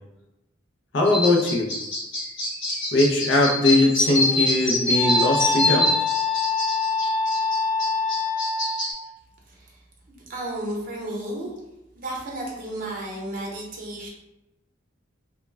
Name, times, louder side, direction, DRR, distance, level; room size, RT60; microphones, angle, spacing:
voice 1, 0.9-1.7 2.9-5.9, left 2 dB, 65° left, 1 dB, 0.5 m, -20 dB
sound 1, 1.1-8.9, left 2 dB, 90° left, 1.1 m, -25 dB
Wind instrument woodwind instrument, 3.7-9.0, left 4 dB, 10° right, 0.6 m, -26 dB
voice 2, 9.5-9.8 10.1-11.5 12.0-14.1, right 1 dB, 45° right, -2 dB, 0.7 m, -33 dB
2.2 x 2.1 x 3.2 m, 0.96 s
head